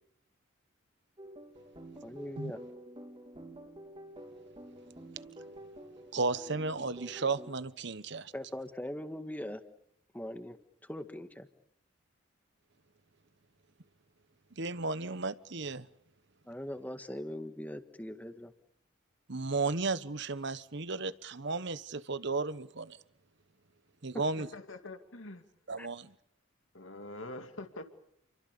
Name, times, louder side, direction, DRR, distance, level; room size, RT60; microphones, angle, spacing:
sound 1, 1.2-7.5, right 1 dB, 25° right, 3.7 m, -49 dB
voice 1, 2.0-2.6 8.3-9.6 10.1-10.6 10.9-11.5 16.5-18.5 25.8-25.9, left 1 dB, 10° left, 8 dB, 1.8 m, -41 dB
voice 2, 6.1-8.3 14.6-15.9 19.3-23.0 24.0-24.5 25.7-26.1, right 3 dB, 55° right, 15 dB, 1.1 m, -34 dB
voice 3, 24.4-25.4 26.7-27.8, left 2 dB, 70° left, 7 dB, 2.4 m, -44 dB
30.0 x 23.5 x 6.9 m, 0.74 s
head